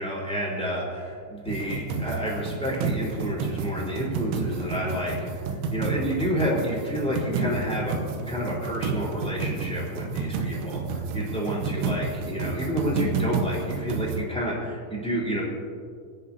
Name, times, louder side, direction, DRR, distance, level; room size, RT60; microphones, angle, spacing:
voice 1, 0.0-15.4, equal, ahead, -6 dB, 3.1 m, -30 dB
sound 1, 1.5-14.2, right 4 dB, 80° right, 3.5 m, -30 dB
28.0 x 10.0 x 2.9 m, 2.1 s
omnidirectional pair, 5.8 m